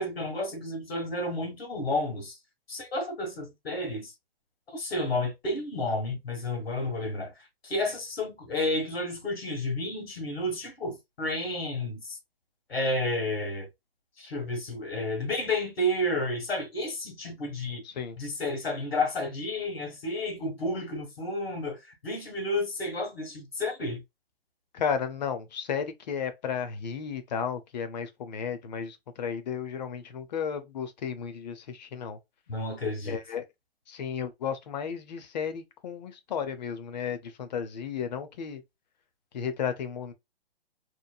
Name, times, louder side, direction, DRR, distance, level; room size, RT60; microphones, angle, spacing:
voice 1, 0.0-2.4 2.7-4.1 4.7-7.3 7.6-12.2 12.7-13.7 14.2-17.8 18.2-24.0 32.5-33.2, left 1 dB, 85° left, 1.5 m, -31 dB
voice 2, 17.8-18.2 24.7-32.2 33.1-33.4 33.9-38.6 39.3-40.1, left 7 dB, 45° left, 0.6 m, -33 dB
3.0 x 2.1 x 2.2 m
hypercardioid pair, 145°, 30 cm